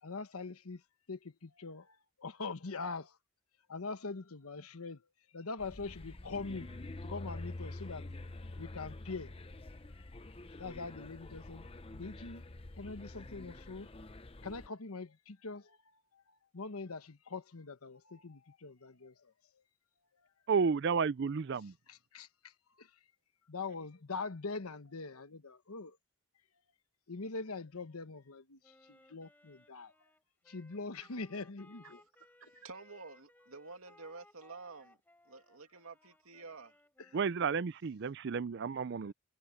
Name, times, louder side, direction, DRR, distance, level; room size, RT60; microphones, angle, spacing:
voice 1, 0.0-0.8 1.1-3.2 3.7-5.0 5.3-8.1 8.6-9.3 10.6-11.7 11.9-12.4 12.7-13.9 14.4-15.8 16.1-16.2 16.5-19.3 21.9-22.9 23.5-26.0 27.1-29.9 30.5-32.0 37.0-37.1 39.1-39.2, left 4 dB, 85° left, 1.2 m, -43 dB
sound 1, 5.6-14.7, left 2 dB, 25° left, 0.7 m, -47 dB
voice 2, 20.5-21.7 37.1-39.1, right 5 dB, 50° right, 0.4 m, -32 dB
Wind instrument woodwind instrument, 28.6-37.6, left 1 dB, 10° left, 4.2 m, -64 dB
voice 3, 32.4-35.0 35.3-36.7, right 3 dB, 75° right, 2.5 m, -50 dB
head